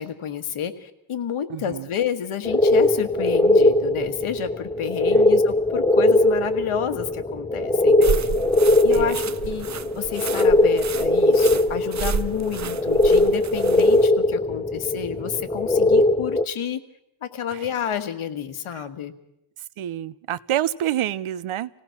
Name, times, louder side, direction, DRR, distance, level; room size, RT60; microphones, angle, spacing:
voice 1, 0.0-8.3 8.8-16.8 17.2-19.1, left 9 dB, 85° left, 9 dB, 1.7 m, -30 dB
voice 2, 1.5-1.9 5.1-5.3 8.9-9.2 17.5-17.7 18.7-18.8 19.8-21.7, right 12 dB, 80° right, 18 dB, 0.8 m, -28 dB
sound 1, 2.5-16.4, left 2 dB, 10° left, 0.7 m, -20 dB
sound 2, 8.0-14.1, right 6 dB, 35° right, 0.7 m, -31 dB
27.0 x 17.5 x 5.8 m, 0.83 s
cardioid pair, 95°, 49 cm